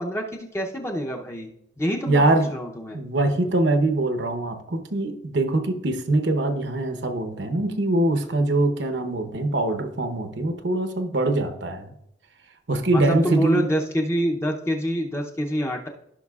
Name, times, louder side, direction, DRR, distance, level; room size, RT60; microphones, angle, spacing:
voice 1, 0.0-1.5 1.8-2.2 2.5-3.0 12.9-15.9, equal, 15° left, 1 dB, 0.7 m, -26 dB
voice 2, 2.1-2.5 2.9-11.9 12.7-13.7, right 2 dB, 70° right, 7 dB, 0.9 m, -23 dB
15.0 x 5.8 x 2.4 m, 0.78 s
head